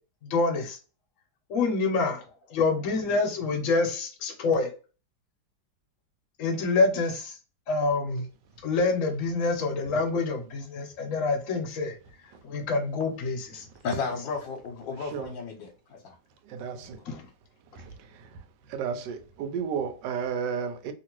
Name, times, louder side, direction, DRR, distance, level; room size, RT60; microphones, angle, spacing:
voice 1, 0.2-0.8 1.5-2.2 2.5-4.7 6.4-7.3 7.7-8.2 8.6-11.9 12.4-13.6 17.1-17.2, left 3 dB, 50° left, 1.1 m, -26 dB
voice 2, 13.8-16.2 16.8-16.9, left 5 dB, 85° left, 1.4 m, -34 dB
voice 3, 16.4-17.0 17.7-18.4 18.7-20.9, right 7 dB, 75° right, 1.2 m, -33 dB
2.9 x 2.8 x 3.0 m
omnidirectional pair, 2.0 m